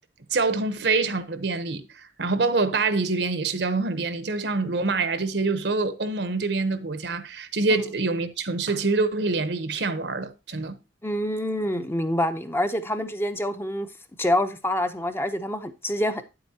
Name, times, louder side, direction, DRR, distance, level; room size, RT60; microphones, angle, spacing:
voice 1, 0.3-10.8, right 3 dB, 75° right, 0.9 m, -25 dB
voice 2, 11.0-13.9 14.2-16.2, left 1 dB, 15° left, 0.6 m, -26 dB
9.0 x 7.8 x 2.8 m
head